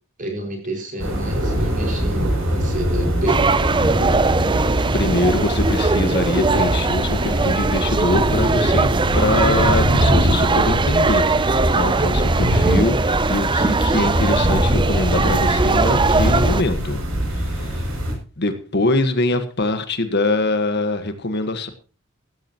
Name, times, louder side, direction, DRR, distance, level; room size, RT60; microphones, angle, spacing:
voice 1, 0.2-3.5, right 1 dB, 40° right, 2 dB, 5.7 m, -28 dB
sound 1, 1.0-18.1, equal, 85° right, 7.2 m, -22 dB
sound 2, 3.3-16.6, right 4 dB, 25° right, 0.5 m, -21 dB
voice 2, 4.9-17.0 17.3-17.9 18.4-21.7, left 2 dB, 55° left, 9 dB, 1.5 m, -23 dB
16.0 x 13.5 x 3.0 m, 0.35 s
head